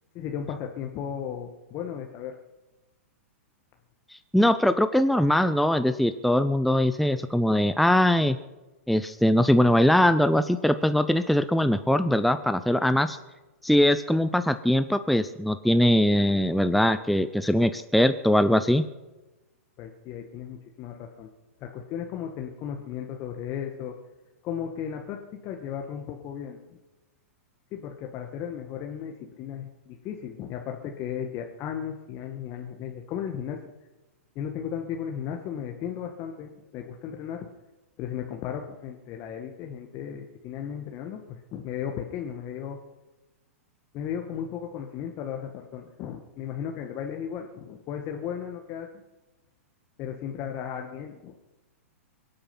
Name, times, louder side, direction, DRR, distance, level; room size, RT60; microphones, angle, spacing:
voice 1, 0.1-2.4 19.8-21.3 21.6-24.0 24.4-26.8 27.7-33.6 34.3-37.5 38.0-42.8 43.9-48.9 50.0-51.4, left 8 dB, 35° left, 3 dB, 1.5 m, -35 dB
voice 2, 4.3-8.4 8.9-13.2 13.6-18.8, left 1 dB, ahead, 10 dB, 0.6 m, -21 dB
23.5 x 8.7 x 5.9 m, 1.1 s
hypercardioid pair, 110°, 8 cm